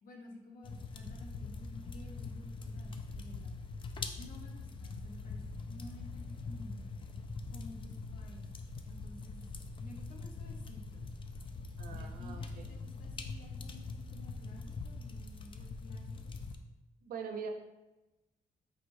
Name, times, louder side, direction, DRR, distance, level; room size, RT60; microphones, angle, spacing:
voice 1, 0.0-3.6 4.2-7.0 7.5-8.5 8.8-9.5 9.8-11.1 11.9-16.3, left 1 dB, 70° left, 1 dB, 0.8 m, -53 dB
sound 1, 0.6-16.6, left 3 dB, 35° left, 0.4 m, -43 dB
voice 2, 11.8-12.7 17.0-17.5, right 6 dB, 80° right, 5 dB, 0.5 m, -43 dB
4.8 x 3.1 x 2.6 m, 1.0 s
cardioid pair, 105°, 15 cm